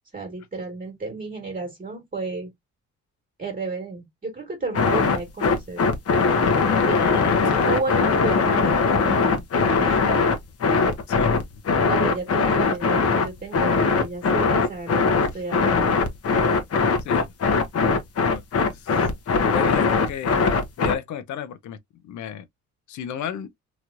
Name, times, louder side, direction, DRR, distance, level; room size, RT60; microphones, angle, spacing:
voice 1, 0.1-2.5 3.4-5.8 6.8-10.3 11.8-16.0, right 3 dB, 25° right, 1.5 m, -32 dB
sound 1, 4.7-21.0, left 4 dB, 50° left, 1.0 m, -20 dB
voice 2, 6.9-7.5 11.1-11.4 12.4-12.6 17.0-17.3 18.3-19.0 19.5-21.8 22.0-22.5 22.9-23.5, left 9 dB, 70° left, 0.7 m, -33 dB
3.1 x 2.9 x 2.4 m
cardioid pair, 90°, 30 cm